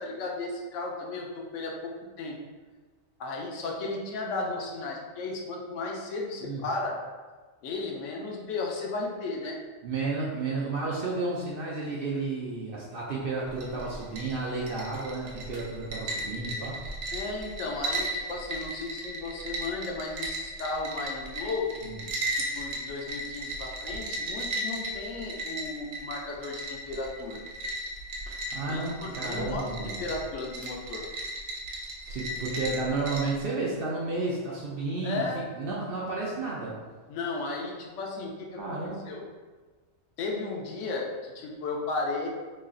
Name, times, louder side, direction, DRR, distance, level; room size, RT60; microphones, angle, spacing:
voice 1, 0.0-2.4 3.2-7.0 7.6-9.6 17.1-21.8 22.3-27.4 28.7-31.0 35.0-35.4 37.1-38.8 39.1-39.2 40.2-42.3, left 3 dB, 70° left, -1 dB, 1.0 m, -34 dB
voice 2, 9.8-16.8 21.8-22.0 28.3-30.0 32.1-35.2 35.6-36.7 38.6-39.1, right 3 dB, 60° right, -4 dB, 0.6 m, -32 dB
sound 1, 13.5-33.4, right 1 dB, 85° right, 1.0 m, -36 dB
3.1 x 2.4 x 3.7 m, 1.3 s
omnidirectional pair, 1.4 m